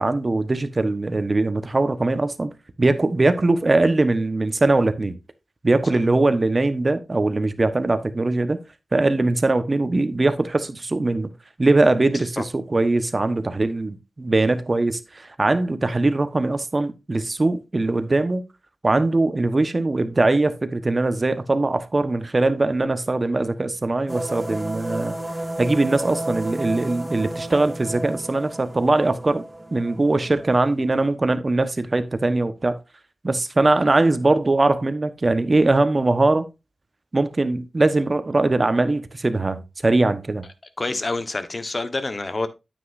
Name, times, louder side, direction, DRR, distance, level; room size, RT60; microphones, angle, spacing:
voice 1, 0.0-2.5 2.8-5.2 5.6-8.6 8.9-11.3 11.6-18.4 18.8-25.1 25.6-29.4 29.7-32.8 33.2-36.5 37.1-40.4, right 2 dB, 40° right, 1.2 m, -21 dB
sound 1, 24.1-31.1, right 1 dB, 10° right, 2.1 m, -32 dB
voice 2, 40.8-42.5, left 3 dB, 40° left, 1.3 m, -27 dB
9.4 x 8.4 x 2.6 m
cardioid pair, 60°, 0 cm